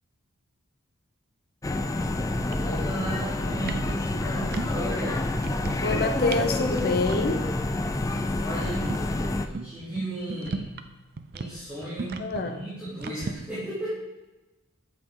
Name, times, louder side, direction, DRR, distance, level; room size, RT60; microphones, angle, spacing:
sound 1, 1.6-9.5, left 2 dB, 15° left, 0.3 m, -28 dB
sound 2, 2.0-2.1 2.4-3.1 3.4-4.8 5.1-6.0 6.3-6.4 6.7-7.2 7.6-7.7 7.9-8.0 8.3-10.9 11.2-13.3, right 3 dB, 45° right, 0.5 m, -35 dB
voice 1, 2.6-5.4 8.3-9.1 9.4-10.8 11.3-13.9, right 1 dB, 5° right, -13 dB, 2.8 m, -35 dB
voice 2, 5.8-7.5 12.2-12.6, left 3 dB, 45° left, 6 dB, 0.8 m, -26 dB
8.7 x 7.4 x 3.8 m, 1.1 s
head